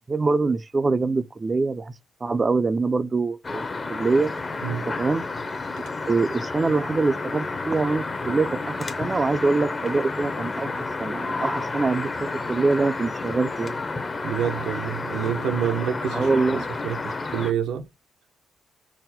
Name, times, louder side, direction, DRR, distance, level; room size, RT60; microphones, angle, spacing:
voice 1, 0.1-1.9 2.2-4.3 5.0-5.2 6.1-13.8 16.1-16.7, right 3 dB, 25° right, 0.4 m, -24 dB
sound 1, 3.4-17.5, left 3 dB, 30° left, 0.6 m, -31 dB
voice 2, 14.2-16.4 16.8-17.8, right 9 dB, 80° right, 0.6 m, -27 dB
4.1 x 2.0 x 4.1 m
cardioid pair, 90°, 0 cm